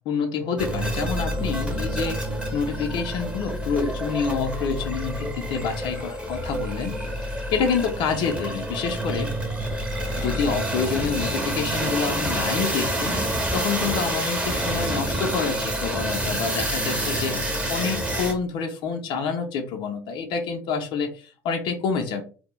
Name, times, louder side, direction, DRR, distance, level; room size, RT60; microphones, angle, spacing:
voice 1, 0.1-7.2 7.5-9.4 10.2-22.2, left 5 dB, 55° left, 5 dB, 0.5 m, -28 dB
sound 1, 0.6-18.3, right 1 dB, 10° right, 0.8 m, -28 dB
2.2 x 2.0 x 2.9 m, 0.38 s
hypercardioid pair, 65°, 10 cm